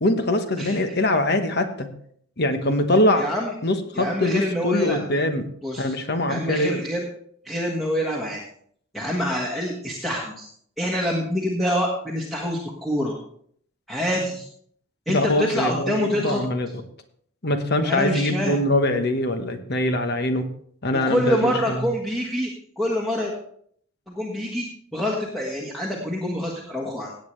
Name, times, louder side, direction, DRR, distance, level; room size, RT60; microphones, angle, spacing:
voice 1, 0.0-1.9 2.4-3.3 3.6-5.4 5.8-6.8 15.1-16.7 17.4-20.4 20.8-21.8, left 1 dB, 45° left, 7 dB, 1.2 m, -23 dB
voice 2, 0.6-0.9 3.2-3.5 3.9-5.2 5.6-5.9 6.3-7.1 7.4-8.4 8.9-10.5 10.8-13.1 13.9-14.5 15.1-16.4 17.8-18.6 20.9-22.5 22.8-23.3 24.1-24.6 24.9-27.1, equal, ahead, -4 dB, 1.4 m, -26 dB
17.5 x 8.3 x 3.3 m, 0.63 s
head